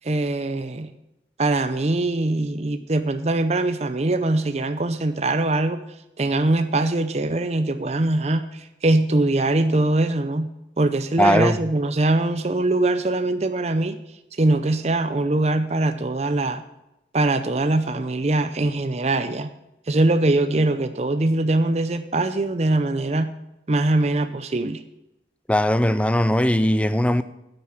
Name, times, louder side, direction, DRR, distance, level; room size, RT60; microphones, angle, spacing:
voice 1, 0.0-0.9 1.4-5.8 6.2-10.5 10.8-14.0 14.4-16.6 17.1-19.5 19.9-23.3 23.7-24.8, right 2 dB, 40° right, 0.6 m, -22 dB
voice 2, 11.2-11.6 25.5-27.2, left 1 dB, 5° left, 0.5 m, -19 dB
10.0 x 8.4 x 6.0 m
head